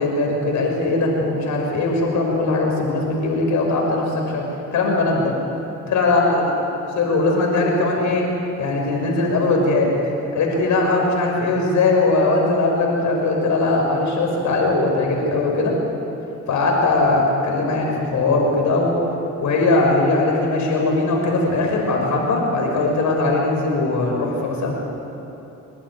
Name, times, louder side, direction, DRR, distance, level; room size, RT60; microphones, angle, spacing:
voice 1, 0.0-4.4 4.7-5.3 5.9-6.5 7.0-8.3 8.6-9.9 10.3-15.7 16.5-19.0 19.4-24.7, left 2 dB, 70° left, 0 dB, 6.0 m, -20 dB
29.0 x 11.5 x 9.7 m, 3.0 s
cardioid pair, 90°, 30 cm